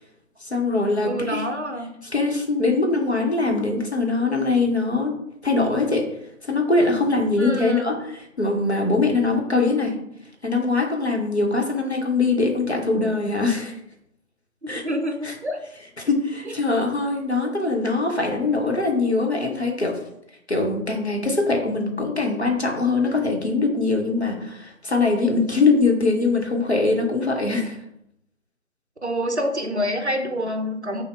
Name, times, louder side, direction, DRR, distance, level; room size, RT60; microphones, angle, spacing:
voice 1, 0.4-1.4 2.0-5.2 5.4-6.1 6.5-10.0 10.4-13.7 14.7-14.8 15.2-15.3 16.0-20.0 20.5-27.8, left 3 dB, 50° left, 1 dB, 0.8 m, -22 dB
voice 2, 1.0-1.9 7.4-7.9 14.6-15.6 16.5-16.6 29.0-31.0, equal, 55° right, 4 dB, 0.6 m, -27 dB
5.7 x 2.1 x 3.3 m, 0.78 s
figure-of-eight pair, 170°, 42 cm